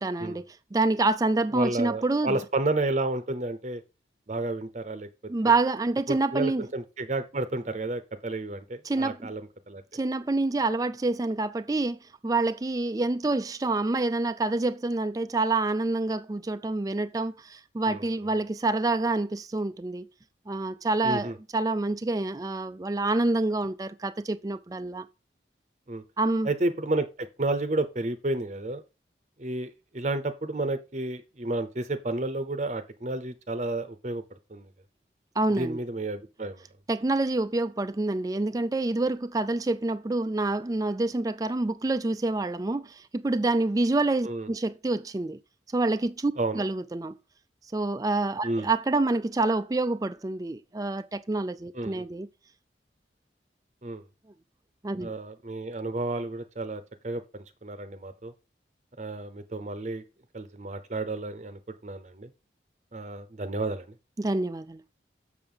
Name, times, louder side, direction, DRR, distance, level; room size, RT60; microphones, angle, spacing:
voice 1, 0.0-2.4 5.3-6.7 8.8-9.3 9.9-20.1 20.5-25.1 26.2-26.5 35.4-35.8 36.9-45.4 45.7-47.2 47.7-52.3 54.8-55.1 64.2-64.8, right 2 dB, 20° right, 0.4 m, -27 dB
voice 2, 1.5-3.8 4.3-5.1 6.1-9.4 9.7-9.8 17.9-18.0 21.0-21.3 25.9-26.0 26.4-28.8 29.4-34.2 34.5-34.7 35.5-36.6 44.2-44.5 46.4-46.6 48.4-48.7 51.7-52.0 53.8-54.0 55.0-58.3 59.0-60.0 60.3-62.3 62.9-63.9, right 2 dB, 40° right, 0.8 m, -31 dB
7.0 x 6.7 x 5.5 m
head